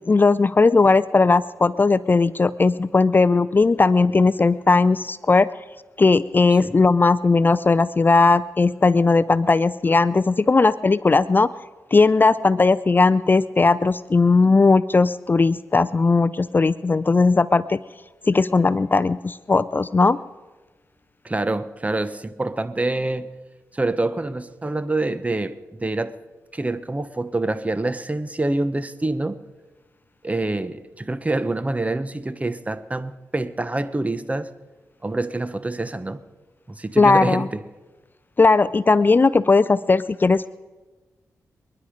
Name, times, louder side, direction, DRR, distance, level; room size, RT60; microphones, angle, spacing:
voice 1, 0.1-5.5 6.0-11.5 11.9-17.8 18.3-20.2 37.0-37.5 38.4-40.5, left 3 dB, 30° left, 0.4 m, -17 dB
voice 2, 21.2-23.3 23.7-26.1 26.5-29.4 30.2-34.5 35.0-36.2 36.7-37.6, right 2 dB, 20° right, 1.0 m, -26 dB
26.5 x 10.5 x 5.0 m
cardioid pair, 60°, 6 cm